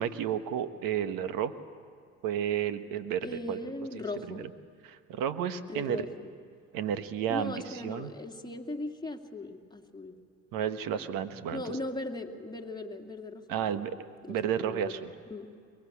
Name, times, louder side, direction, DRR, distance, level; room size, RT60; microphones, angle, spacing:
voice 1, 0.0-1.5 2.2-3.6 4.3-4.4 4.8-6.0 6.7-8.1 10.5-11.8 13.5-14.0 14.3-15.1, right 9 dB, 70° right, 11 dB, 1.4 m, -32 dB
voice 2, 3.2-4.5 5.7-6.3 7.3-10.2 11.5-13.9 14.2-14.9 15.3-15.5, left 2 dB, 10° left, 3 dB, 2.3 m, -38 dB
23.0 x 21.0 x 8.6 m, 2.3 s
hypercardioid pair, 65°, 35 cm